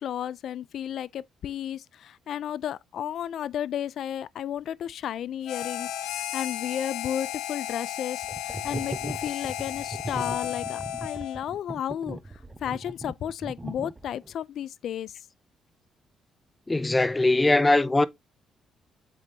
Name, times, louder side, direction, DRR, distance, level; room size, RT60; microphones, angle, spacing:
voice 1, 0.0-15.3, left 10 dB, 70° left, 0.3 m, -33 dB
Harmonica, 5.4-11.5, left 12 dB, 85° left, 0.8 m, -34 dB
sound 1, 8.2-14.3, right 2 dB, 15° right, 0.8 m, -38 dB
voice 2, 16.7-18.1, left 2 dB, 15° left, 0.6 m, -21 dB
8.3 x 3.8 x 3.3 m
cardioid pair, 90°, 0 cm